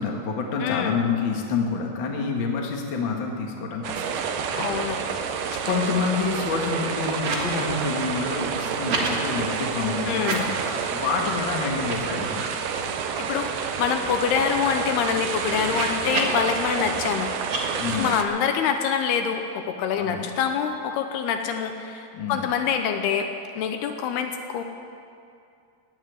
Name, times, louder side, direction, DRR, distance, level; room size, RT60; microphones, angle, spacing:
voice 1, 0.0-4.2 5.6-10.5 10.9-12.5 17.8-18.1 19.9-20.3 22.1-22.5, left 5 dB, 60° left, 0 dB, 1.2 m, -28 dB
voice 2, 0.6-1.0 4.6-5.0 5.5-5.6 10.0-10.5 13.2-17.6 17.9-23.3 23.6-24.6, left 7 dB, 75° left, 6 dB, 2.6 m, -26 dB
sound 1, 3.8-18.2, right 6 dB, 80° right, 1.9 m, -29 dB
sound 2, 4.0-4.2 4.4-5.1 5.4-7.5 7.8-9.1 10.1-10.8 11.2-11.4 11.7-13.1 13.5-13.6 13.8-16.5 17.4-17.6, right 3 dB, 60° right, 1.3 m, -33 dB
17.0 x 7.9 x 9.6 m, 2.5 s
omnidirectional pair, 5.0 m